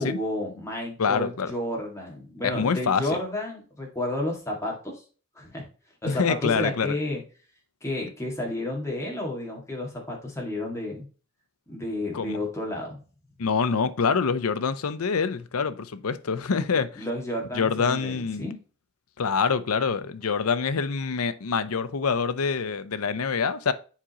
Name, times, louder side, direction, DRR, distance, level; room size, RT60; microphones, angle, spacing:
voice 1, 0.0-5.0 5.4-5.6 6.0-7.2 7.8-11.1 11.7-13.0 16.5-18.6, left 1 dB, 15° left, 1.9 m, -31 dB
voice 2, 1.0-1.5 2.4-3.0 6.0-7.0 12.1-12.4 13.4-17.0 17.5-18.5 19.2-23.7, left 5 dB, 80° left, 0.6 m, -25 dB
7.3 x 5.0 x 2.9 m
head